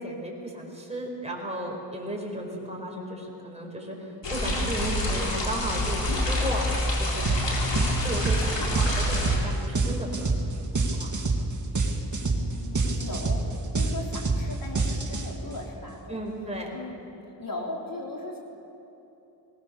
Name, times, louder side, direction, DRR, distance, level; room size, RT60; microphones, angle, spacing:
voice 1, 0.0-7.6 8.0-11.1 16.1-16.7, equal, 15° right, -1 dB, 4.7 m, -35 dB
sound 1, 4.2-9.4, left 1 dB, 75° left, 3.9 m, -27 dB
sound 2, 7.2-7.4 7.7-15.5, right 3 dB, 40° right, 2.1 m, -26 dB
voice 2, 12.2-16.2 16.7-17.1 17.4-18.4, left 2 dB, 50° left, -1 dB, 4.1 m, -38 dB
21.0 x 18.0 x 7.0 m, 3.0 s
wide cardioid pair, 75°, 43 cm